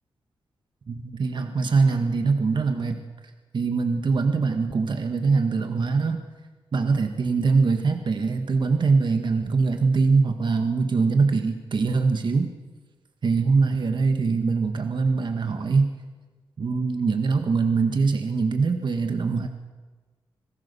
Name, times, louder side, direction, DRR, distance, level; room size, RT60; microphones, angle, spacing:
voice 1, 0.9-3.0 3.5-6.2 6.7-12.5 13.2-15.9 16.6-19.5, right 4 dB, 55° right, 6 dB, 1.7 m, -23 dB
26.0 x 17.0 x 7.0 m, 1.3 s
cardioid pair, 70°, 9 cm